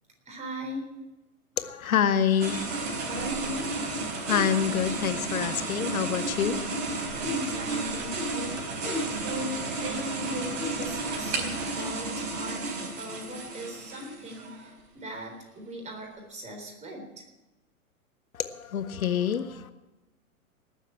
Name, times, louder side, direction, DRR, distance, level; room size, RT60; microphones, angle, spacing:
voice 1, 0.3-0.9 3.0-3.7 7.1-12.6 13.0-17.2, equal, 15° right, 2 dB, 3.8 m, -39 dB
voice 2, 1.6-3.1 4.1-7.2 8.9-9.2 18.3-19.7, left 8 dB, 70° left, 10 dB, 1.4 m, -28 dB
sound 1, 2.4-14.7, right 2 dB, 55° right, 4.2 m, -32 dB
19.0 x 7.2 x 8.7 m, 1.1 s
figure-of-eight pair, 110°, 44 cm